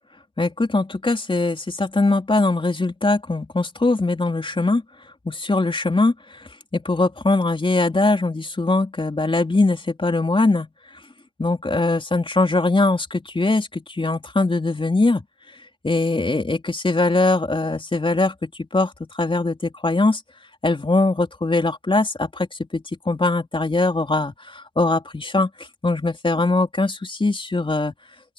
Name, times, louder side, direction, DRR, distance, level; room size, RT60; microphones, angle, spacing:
voice 1, 0.4-4.8 5.2-10.7 11.4-15.2 15.8-20.2 20.6-27.9, left 2 dB, 15° left, 3.9 m, -21 dB
open air
cardioid pair, 90°, 30 cm